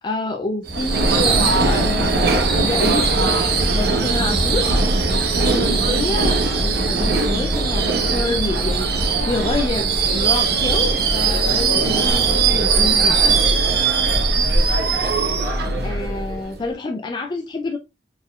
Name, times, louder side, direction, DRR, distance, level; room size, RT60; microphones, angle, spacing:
voice 1, 0.0-3.1 3.8-4.7 5.4-13.4 15.8-17.8, left 2 dB, 25° left, 0.4 m, -27 dB
Subway metro underground / Screech, 0.7-16.6, right 3 dB, 60° right, 0.7 m, -19 dB
4.3 x 3.6 x 2.2 m
head